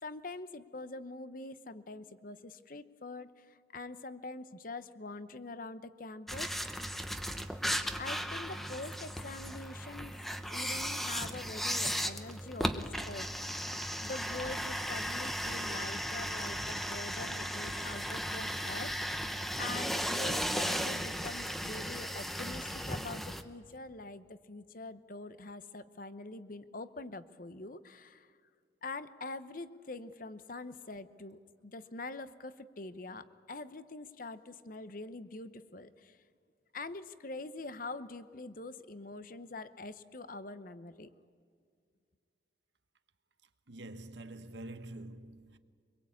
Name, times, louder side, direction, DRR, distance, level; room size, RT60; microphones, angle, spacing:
voice 1, 0.0-6.5 8.0-10.1 10.5-13.6 14.0-28.3 28.8-36.2 36.7-41.1, left 2 dB, 45° left, 0.9 m, -44 dB
sound 1, 6.3-23.4, equal, ahead, 0.9 m, -36 dB
voice 2, 43.7-45.6, right 1 dB, 70° right, 1.1 m, -46 dB
24.5 x 22.0 x 8.6 m
head